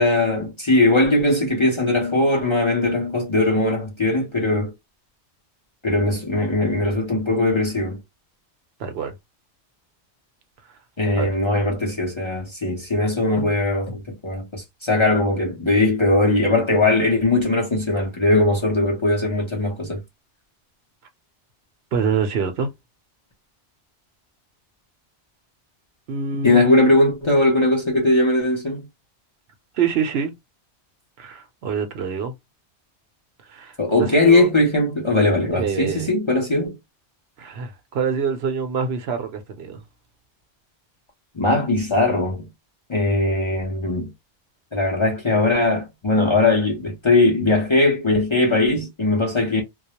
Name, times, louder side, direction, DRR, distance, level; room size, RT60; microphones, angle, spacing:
voice 1, 0.0-4.7 5.8-8.0 11.0-20.0 26.4-28.8 33.8-36.8 41.4-42.5 42.9-44.1 44.7-49.6, left 2 dB, 35° left, 0.6 m, -20 dB
voice 2, 8.8-9.1 10.7-10.8 11.1-11.4 21.9-22.7 26.1-26.8 29.7-30.3 31.2-32.3 33.4-34.5 35.5-36.1 37.4-39.8, right 6 dB, 70° right, 0.8 m, -26 dB
2.3 x 2.0 x 2.7 m
omnidirectional pair, 1.1 m